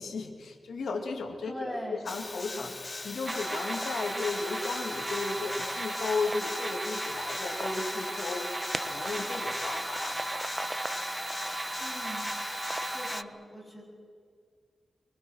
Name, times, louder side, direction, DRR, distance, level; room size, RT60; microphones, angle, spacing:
voice 1, 0.0-1.8 2.0-2.8 3.0-10.2, left 3 dB, 90° left, 2 dB, 2.1 m, -35 dB
voice 2, 1.4-2.0 11.8-12.3 12.8-13.8, equal, 5° left, 0 dB, 7.9 m, -40 dB
sound 1, 2.1-13.2, left 3 dB, 35° left, 0.6 m, -41 dB
sound 2, 3.3-13.2, right 1 dB, 20° right, 1.3 m, -35 dB
24.5 x 22.5 x 6.3 m, 2.1 s
cardioid pair, 60°, 0 cm